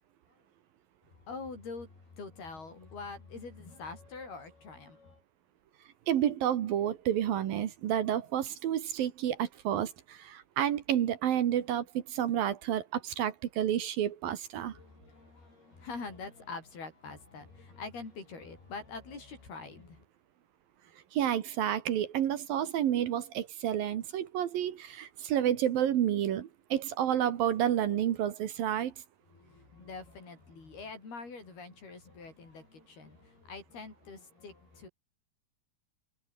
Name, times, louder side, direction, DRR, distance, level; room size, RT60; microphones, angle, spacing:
voice 1, 1.1-5.2 14.6-20.0 29.3-34.9, left 4 dB, 70° left, 9.9 m, -45 dB
voice 2, 6.1-14.7 21.1-28.9, right 10 dB, 65° right, 3.1 m, -30 dB
omnidirectional pair, 4.7 m